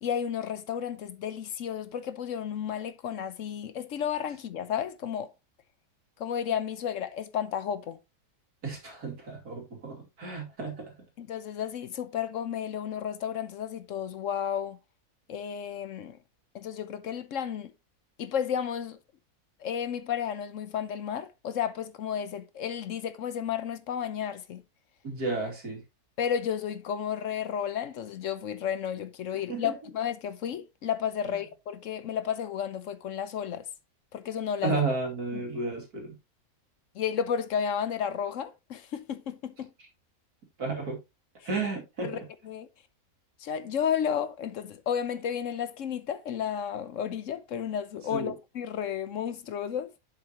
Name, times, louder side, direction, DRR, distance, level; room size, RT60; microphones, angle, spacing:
voice 1, 0.0-5.3 6.2-8.0 11.2-14.8 15.3-16.2 16.5-17.7 18.2-19.0 19.6-24.6 26.2-33.7 34.1-34.8 35.3-35.4 36.9-39.7 42.0-42.2 42.4-42.7 43.4-49.9, left 8 dB, 65° left, 1.0 m, -32 dB
voice 2, 8.6-11.1 25.0-25.8 29.5-29.7 31.3-31.4 34.6-36.1 40.6-41.0 41.4-42.2 48.1-48.3, right 3 dB, 90° right, 3.2 m, -32 dB
7.9 x 7.0 x 2.9 m
omnidirectional pair, 1.6 m